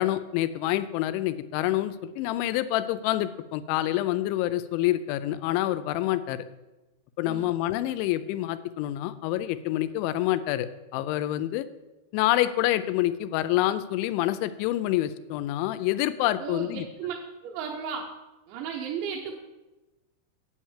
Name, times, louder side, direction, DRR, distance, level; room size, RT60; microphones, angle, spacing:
voice 1, 0.0-6.4 7.2-11.7 12.1-16.9, left 14 dB, 85° left, 13 dB, 3.0 m, -27 dB
voice 2, 7.2-7.6 16.4-17.1 17.4-18.1 18.5-19.3, right 7 dB, 80° right, 0 dB, 3.1 m, -34 dB
9.1 x 8.5 x 7.2 m, 1.1 s
omnidirectional pair, 5.3 m